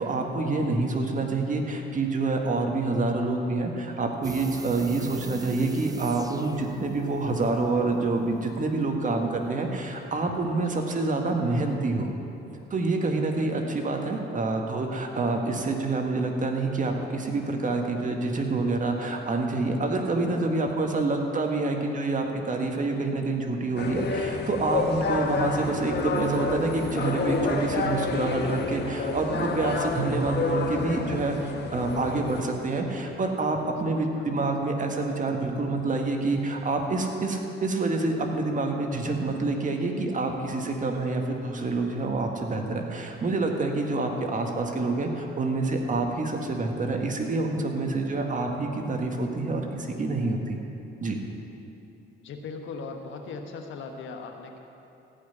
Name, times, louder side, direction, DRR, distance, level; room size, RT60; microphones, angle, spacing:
voice 1, 0.0-12.1 12.7-50.6 51.0-51.2, right 3 dB, 40° right, 2 dB, 1.7 m, -27 dB
sound 1, 4.2-11.0 11.3-11.4, right 4 dB, 20° right, 0.6 m, -42 dB
sound 2, 23.8-32.4, left 4 dB, 60° left, 1.3 m, -29 dB
sound 3, 25.4-31.3, equal, ahead, 2.5 m, -51 dB
voice 2, 33.9-34.4 52.2-54.6, left 4 dB, 75° left, 4 dB, 1.4 m, -39 dB
15.0 x 5.8 x 9.7 m, 2.9 s
cardioid pair, 90°, 20 cm